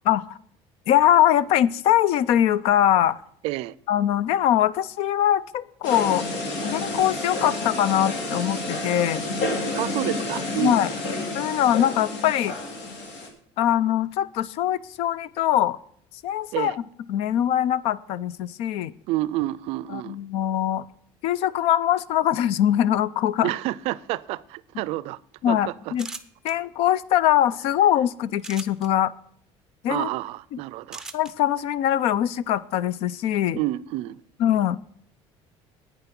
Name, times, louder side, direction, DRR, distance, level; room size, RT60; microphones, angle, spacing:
voice 1, 0.1-0.4 0.9-3.2 3.9-6.2 6.7-9.2 10.6-10.9 11.3-12.6 13.6-15.8 16.2-16.8 17.1-18.9 19.9-20.9 21.2-23.5 25.4-26.1 26.4-29.1 29.8-30.1 30.5-30.6 31.1-33.6 34.4-34.8, left 11 dB, 65° left, 0.5 m, -22 dB
voice 2, 3.4-3.7 9.7-10.8 16.5-16.8 19.1-20.2 23.4-25.2 25.5-25.9 29.9-31.0 33.6-34.2, right 17 dB, 65° right, 0.4 m, -29 dB
sound 1, 5.8-13.3, left 2 dB, 80° left, 2.8 m, -30 dB
sound 2, 25.9-26.5 28.4-28.9 30.9-31.3, right 3 dB, 5° right, 0.6 m, -38 dB
10.5 x 9.1 x 6.0 m
cardioid pair, 170°, 11 cm